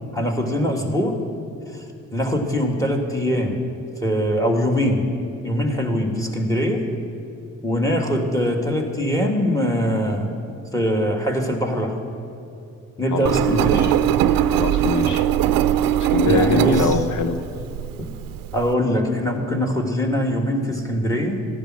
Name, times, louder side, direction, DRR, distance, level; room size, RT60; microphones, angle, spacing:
voice 1, 0.1-1.2 1.7-1.8 2.1-3.6 4.0-5.1 5.4-6.9 7.6-10.3 10.7-12.0 13.0-14.3 16.2-17.0 18.0-18.1 18.5-21.5, equal, 10° left, 2 dB, 2.4 m, -22 dB
voice 2, 13.1-13.9 14.5-15.3 16.0-17.5, left 4 dB, 60° left, 11 dB, 1.0 m, -23 dB
Engine, 13.2-18.7, right 11 dB, 80° right, 0.6 m, -21 dB
14.5 x 10.5 x 6.4 m, 2.6 s
supercardioid pair, 55°, 33 cm